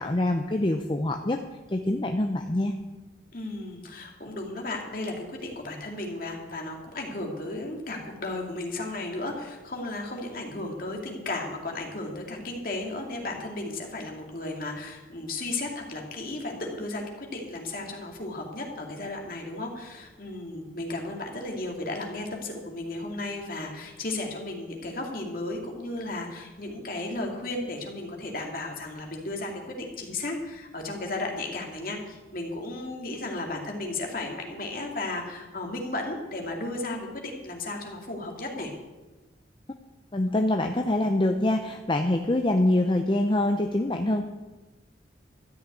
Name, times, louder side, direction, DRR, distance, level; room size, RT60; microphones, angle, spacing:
voice 1, 0.0-1.4 1.7-2.7 40.1-44.2, left 1 dB, 25° left, 4 dB, 0.6 m, -25 dB
voice 2, 3.3-38.7, left 2 dB, 50° left, 1 dB, 2.3 m, -34 dB
13.0 x 6.4 x 9.4 m, 1.2 s
head